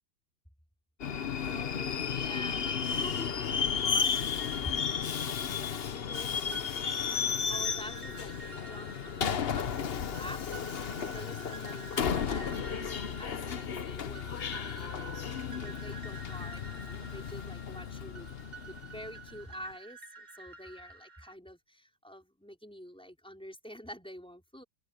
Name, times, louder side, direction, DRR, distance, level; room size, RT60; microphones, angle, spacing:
Subway metro underground, 1.0-19.4, left 7 dB, 60° left, 0.6 m, -34 dB
voice 1, 1.4-11.9 12.2-18.3 18.7-24.6, equal, ahead, 4.8 m, -47 dB
sound 1, 4.1-21.3, right 4 dB, 20° right, 1.8 m, -50 dB
open air
omnidirectional pair, 2.2 m